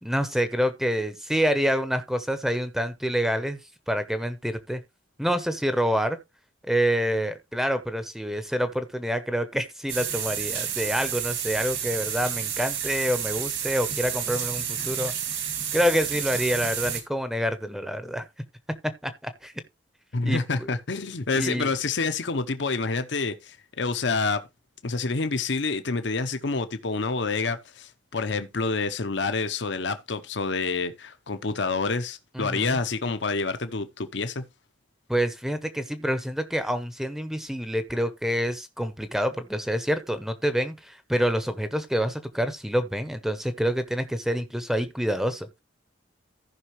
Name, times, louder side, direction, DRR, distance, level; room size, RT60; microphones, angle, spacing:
voice 1, 0.0-3.6 3.9-4.8 5.2-6.2 6.6-15.4 15.7-18.3 19.0-19.5 20.2-20.7 21.3-21.7 32.3-32.8 35.1-45.5, equal, ahead, 0.7 m, -27 dB
sound 1, 9.9-17.0, right 8 dB, 65° right, 2.1 m, -30 dB
voice 2, 20.1-24.4 24.8-34.4, left 4 dB, 65° left, 0.8 m, -28 dB
15.0 x 5.5 x 3.1 m
head